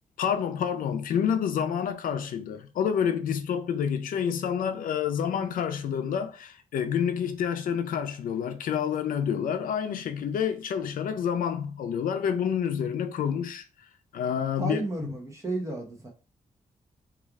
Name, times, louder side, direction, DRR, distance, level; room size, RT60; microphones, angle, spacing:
voice 1, 0.2-13.6 14.1-15.1, left 8 dB, 90° left, 0.4 m, -28 dB
voice 2, 14.6-16.1, right 2 dB, 20° right, 0.8 m, -32 dB
3.2 x 2.4 x 3.5 m
wide cardioid pair, 160°, 14 cm